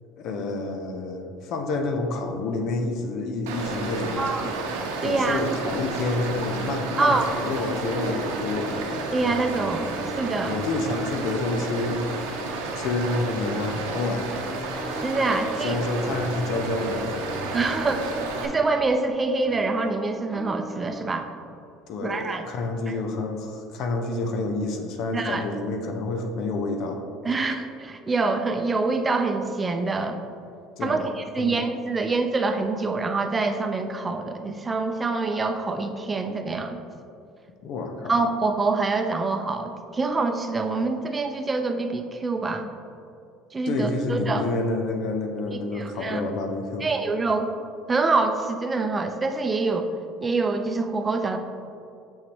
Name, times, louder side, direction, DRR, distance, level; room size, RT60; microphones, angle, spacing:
voice 1, 0.2-4.4 5.0-8.9 10.4-12.2 12.7-14.3 14.9-15.0 15.6-17.1 21.9-27.0 30.8-31.1 31.4-31.5 37.6-38.2 43.7-46.9, left 2 dB, 60° left, 4 dB, 0.7 m, -28 dB
Stream, 3.5-18.5, right 3 dB, 80° right, 0.7 m, -31 dB
voice 2, 4.2-4.5 5.0-5.4 7.0-7.3 9.1-9.9 10.2-10.6 15.0-15.8 17.5-18.1 18.4-21.3 22.0-22.4 22.9-23.0 25.1-25.4 27.2-30.2 30.8-36.8 38.1-42.7 43.5-44.4 45.7-46.2 46.8-47.5 47.9-49.9 50.2-51.4, right 3 dB, 25° right, 6 dB, 0.6 m, -25 dB
sound 1, 7.4-13.3 14.3-21.7, equal, 10° left, 1.4 m, -39 dB
6.6 x 5.8 x 3.0 m, 2.5 s
hypercardioid pair, 75°, 0 cm